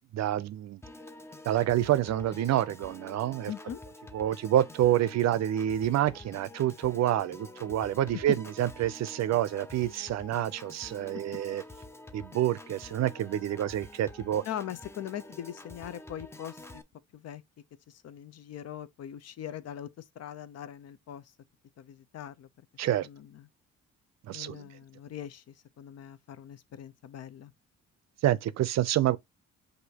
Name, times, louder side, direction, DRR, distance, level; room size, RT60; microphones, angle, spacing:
voice 1, 0.1-0.8 1.4-3.5 4.1-11.6 12.1-14.4 22.8-23.1 24.3-24.7 28.2-29.2, right 12 dB, 60° right, 0.5 m, -28 dB
Piano / Organ, 0.8-16.8, left 2 dB, 10° left, 0.5 m, -48 dB
voice 2, 3.5-3.8 8.1-8.2 14.4-16.8 17.1-17.4 17.9-21.3 21.8-22.5 22.9-23.5 24.3-27.5, left 10 dB, 55° left, 0.6 m, -41 dB
6.2 x 2.7 x 2.8 m
cardioid pair, 90°, 30 cm